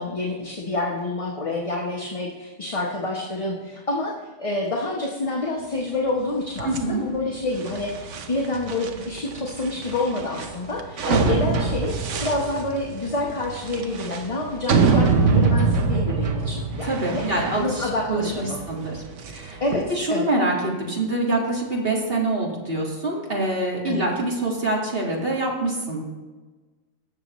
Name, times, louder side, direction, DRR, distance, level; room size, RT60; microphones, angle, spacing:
voice 1, 0.0-11.9 12.2-17.2 17.6-18.6 19.6-19.8 20.1-20.3 23.8-24.0, left 2 dB, 30° left, -2 dB, 1.0 m, -28 dB
voice 2, 6.6-7.1 11.1-11.4 16.8-19.6 19.9-26.0, right 2 dB, 50° right, -2 dB, 2.1 m, -25 dB
sound 1, 6.6-19.8, right 4 dB, 80° right, 1.2 m, -25 dB
17.5 x 6.8 x 3.1 m, 1.3 s
omnidirectional pair, 1.2 m